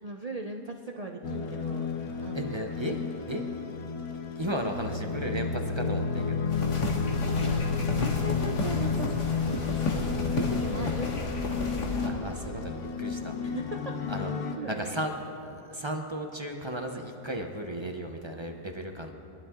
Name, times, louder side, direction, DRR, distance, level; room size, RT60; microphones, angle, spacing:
voice 1, 0.0-1.9 2.2-2.9 7.5-11.5 13.4-14.2 14.6-14.9, right 3 dB, 85° right, 3 dB, 0.3 m, -39 dB
sound 1, 1.2-14.5, left 5 dB, 65° left, 1.4 m, -31 dB
voice 2, 2.3-3.0 3.3-3.5 4.4-6.5 10.8-10.9 12.0-13.4 14.1-15.1 15.4-19.1, equal, 25° right, 3 dB, 0.6 m, -35 dB
sound 2, 6.5-12.1, left 2 dB, 90° left, 2.2 m, -32 dB
22.0 x 12.0 x 3.7 m, 2.7 s
omnidirectional pair, 1.7 m